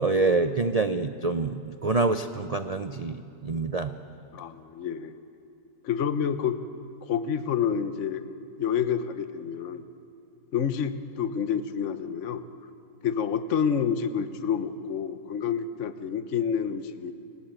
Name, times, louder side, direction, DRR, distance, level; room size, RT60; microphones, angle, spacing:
voice 1, 0.0-3.9, right 3 dB, 85° right, 9 dB, 0.3 m, -26 dB
voice 2, 4.3-5.1 5.8-6.6 7.1-8.3 8.6-9.8 10.5-12.4 13.0-17.1, left 7 dB, 50° left, 11 dB, 1.3 m, -28 dB
29.5 x 18.5 x 9.1 m, 2.6 s
omnidirectional pair, 1.9 m